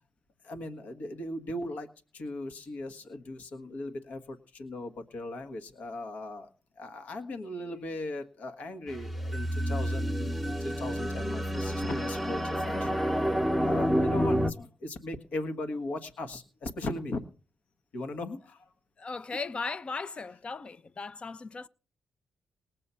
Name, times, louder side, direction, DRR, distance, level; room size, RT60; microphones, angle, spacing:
voice 1, 0.4-1.9 2.1-6.5 6.8-12.9 13.6-17.2 17.9-18.6, left 2 dB, 70° left, 1.4 m, -38 dB
sound 1, 8.9-14.5, equal, 5° left, 1.0 m, -29 dB
voice 2, 19.0-21.7, left 4 dB, 40° left, 0.7 m, -37 dB
19.0 x 7.6 x 5.6 m
supercardioid pair, 60°, 3 cm